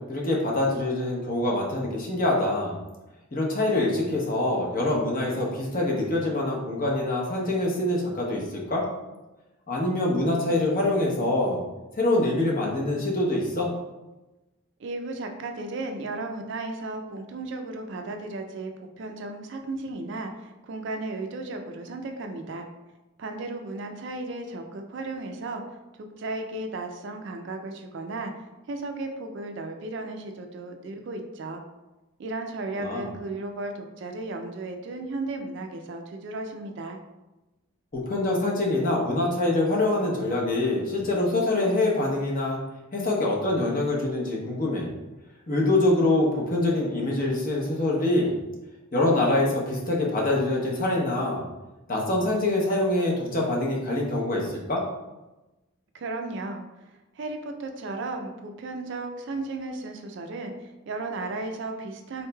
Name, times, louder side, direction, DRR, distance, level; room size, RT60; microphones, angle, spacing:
voice 1, 0.0-2.8 3.3-8.9 9.7-11.6 12.0-13.7 32.8-33.1 37.9-42.6 42.9-44.9 45.5-48.3 48.9-51.4 51.9-54.8, left 2 dB, 40° left, -2 dB, 0.8 m, -25 dB
voice 2, 14.8-22.7 23.2-25.6 26.2-28.3 28.7-31.6 32.2-37.0 55.9-56.6 57.2-62.3, right 2 dB, 55° right, 5 dB, 0.4 m, -35 dB
4.0 x 3.1 x 2.2 m, 1.0 s
head